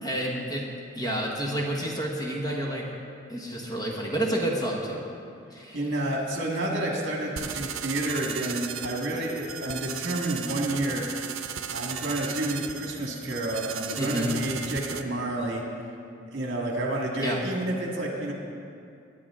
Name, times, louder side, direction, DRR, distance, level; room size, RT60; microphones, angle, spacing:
voice 1, 0.0-0.7 0.9-2.8 3.3-5.0 5.5-5.9 14.0-14.3 17.2-17.4, right 1 dB, 20° left, -2 dB, 1.4 m, -29 dB
voice 2, 5.7-11.0 11.7-15.6 16.3-18.3, right 1 dB, 60° right, 0 dB, 1.9 m, -30 dB
sound 1, 7.4-15.0, right 8 dB, 85° right, 0.6 m, -36 dB
20.0 x 8.3 x 3.7 m, 2.5 s
head